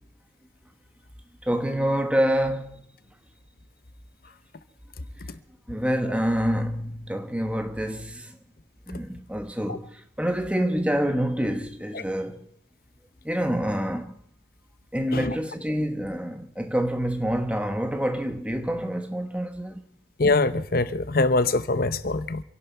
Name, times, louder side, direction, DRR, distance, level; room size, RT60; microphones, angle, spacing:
voice 1, 1.4-2.8 5.7-8.4 8.9-12.5 13.2-14.1 14.9-19.8, equal, 5° right, 1.2 m, -27 dB
voice 2, 20.2-22.4, left 3 dB, 50° left, 0.8 m, -23 dB
27.5 x 11.5 x 4.5 m
head